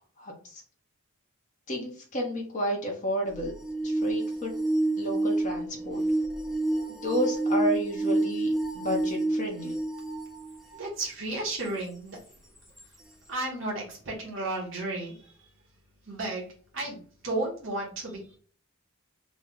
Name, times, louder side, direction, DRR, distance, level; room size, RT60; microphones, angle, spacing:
voice 1, 0.2-0.6 1.7-3.5 3.8-4.5 4.9-6.0 6.9-9.8, equal, 35° left, -2 dB, 0.8 m, -31 dB
sound 1, 3.3-11.0 11.7-11.8 12.8-12.9, right 2 dB, ahead, 0.3 m, -29 dB
voice 2, 10.7-12.4 13.3-15.4 16.0-18.4, right 2 dB, 60° right, -2 dB, 1.0 m, -34 dB
3.2 x 2.1 x 3.7 m, 0.43 s
head